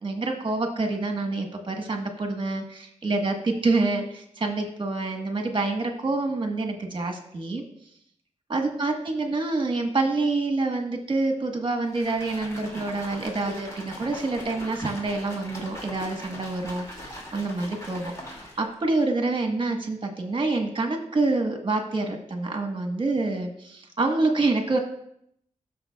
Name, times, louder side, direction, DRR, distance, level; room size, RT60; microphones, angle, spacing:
voice 1, 0.0-7.6 8.5-18.3 18.6-24.8, right 3 dB, 40° right, 3 dB, 1.3 m, -27 dB
sound 1, 11.9-18.8, equal, 25° left, 2.4 m, -41 dB
14.5 x 6.7 x 2.3 m, 0.71 s
wide cardioid pair, 125°, 13 cm